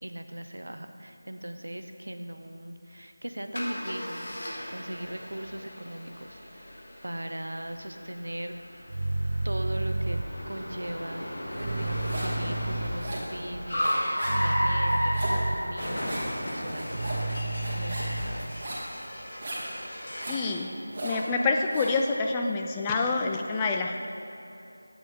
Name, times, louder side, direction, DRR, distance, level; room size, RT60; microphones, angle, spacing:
voice 1, 0.0-8.5 9.4-10.2 10.5-11.3 11.6-16.1 16.4-16.9 17.7-18.6, right 1 dB, 85° right, 7 dB, 0.8 m, -39 dB
Car, 3.5-20.4, equal, 55° left, 2.6 m, -34 dB
sound 1, 8.9-10.2 11.6-12.9 14.2-15.6 16.9-18.2, right 2 dB, 55° right, 0.8 m, -30 dB
sound 2, 11.6-12.4 12.7-22.0, right 1 dB, 30° right, 2.5 m, -37 dB
voice 2, 20.3-20.7 21.0-24.1, left 3 dB, 15° left, 2 dB, 0.4 m, -27 dB
14.0 x 8.7 x 3.7 m, 2.7 s
figure-of-eight pair, 170°, 0 cm